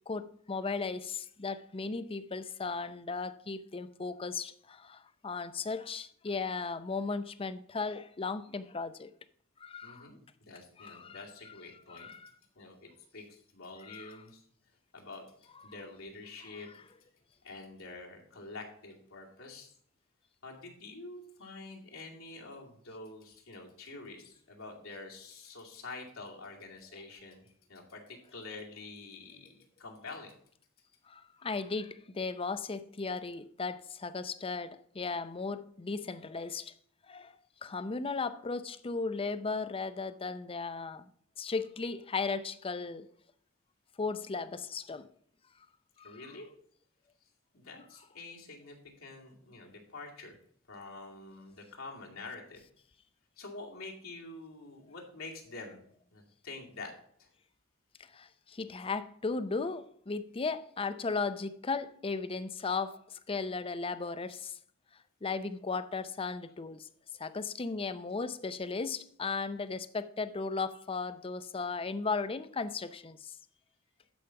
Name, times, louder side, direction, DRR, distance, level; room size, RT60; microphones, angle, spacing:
voice 1, 0.1-9.1 9.6-10.1 10.8-11.2 11.9-12.3 13.9-14.1 15.7-15.8 31.1-36.7 37.1-37.4 37.6-41.1 41.4-43.1 44.0-45.1 46.0-46.2 58.1-64.5 65.2-66.9 67.2-73.3, left 4 dB, 25° left, 0.5 m, -36 dB
voice 2, 9.8-12.1 12.6-14.5 14.9-15.2 15.6-16.7 17.4-19.7 20.4-30.3 46.0-46.5 47.5-50.4 50.7-52.6 53.4-55.8 56.1-56.9 57.2-57.3, left 3 dB, 80° left, 2.4 m, -47 dB
12.5 x 5.0 x 5.8 m
head